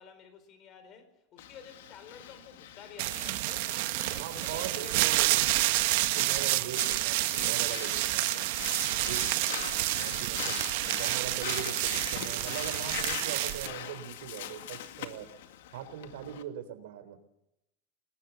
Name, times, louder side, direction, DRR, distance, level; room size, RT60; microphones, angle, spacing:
voice 1, 0.0-5.5 8.8-9.5, left 6 dB, 35° left, 4.5 m, -51 dB
Breathing, 1.4-16.4, left 11 dB, 90° left, 2.2 m, -42 dB
sound 1, 3.0-13.7, right 18 dB, 65° right, 1.1 m, -29 dB
voice 2, 4.2-5.3 5.6-5.8 6.1-8.5 9.1-9.2 9.9-15.3 15.7-17.2, right 10 dB, 85° right, 3.7 m, -41 dB
25.5 x 20.0 x 7.0 m
supercardioid pair, 160°, 0 cm